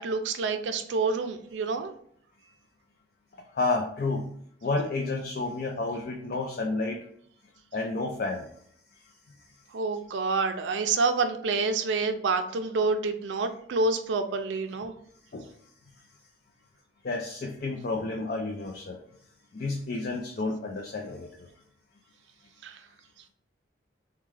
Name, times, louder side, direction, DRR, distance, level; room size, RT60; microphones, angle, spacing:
voice 1, 0.0-1.9 9.7-14.9 22.6-22.8, right 4 dB, 80° right, 8 dB, 0.4 m, -28 dB
voice 2, 3.5-4.3 4.6-7.0 7.7-8.5 15.3-15.5 17.0-19.0 19.5-21.5, left 3 dB, 50° left, 2 dB, 0.4 m, -30 dB
3.5 x 2.2 x 3.2 m, 0.64 s
head